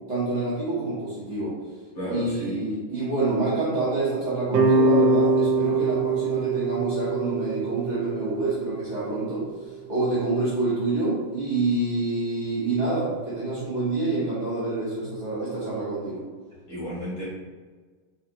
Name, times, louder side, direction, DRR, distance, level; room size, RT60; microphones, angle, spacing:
voice 1, 0.1-1.6 2.1-9.4 9.9-16.2, right 2 dB, 40° right, -8 dB, 1.4 m, -27 dB
voice 2, 1.9-2.6 16.7-17.3, right 1 dB, 50° left, -9 dB, 2.0 m, -32 dB
sound 1, 4.5-9.6, right 3 dB, 75° right, 1.2 m, -24 dB
4.0 x 4.0 x 2.9 m, 1.4 s
omnidirectional pair, 2.1 m